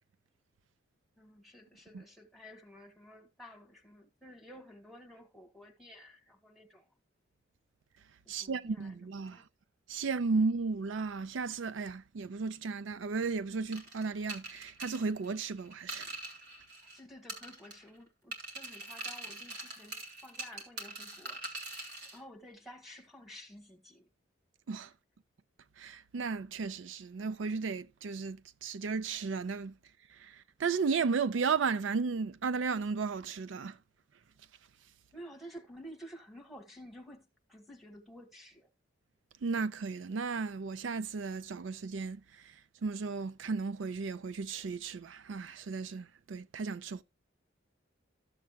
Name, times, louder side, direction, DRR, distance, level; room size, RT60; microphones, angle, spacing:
voice 1, 1.2-7.0 8.2-9.5 10.0-10.5 16.8-21.4 22.0-24.1 35.1-38.7, equal, ahead, 1.6 m, -52 dB
voice 2, 8.3-9.5 9.9-16.2 24.7-24.9 25.8-29.8 30.1-33.8 39.4-47.0, right 4 dB, 75° right, 0.4 m, -34 dB
sound 1, 13.7-17.0 17.3-18.0 18.3-22.2, right 2 dB, 55° right, 2.5 m, -43 dB
13.5 x 7.4 x 2.3 m
head